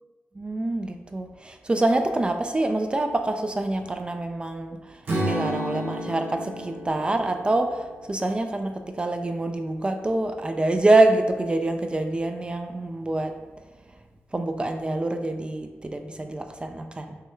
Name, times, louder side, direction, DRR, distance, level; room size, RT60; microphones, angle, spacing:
voice 1, 0.4-13.3 14.3-17.2, right 2 dB, 25° right, 6 dB, 0.3 m, -25 dB
Strum, 5.1-9.2, right 1 dB, 45° right, 1.0 m, -32 dB
6.6 x 2.2 x 3.1 m, 1.3 s
cardioid pair, 90°, 4 cm